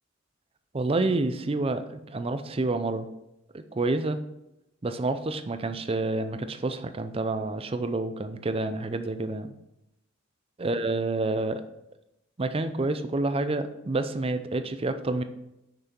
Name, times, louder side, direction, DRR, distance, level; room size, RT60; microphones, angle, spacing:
voice 1, 0.7-3.1 3.5-4.2 4.8-9.5 10.6-11.6 12.4-15.2, right 2 dB, 30° right, 10 dB, 0.5 m, -28 dB
6.5 x 6.0 x 4.5 m, 0.86 s
head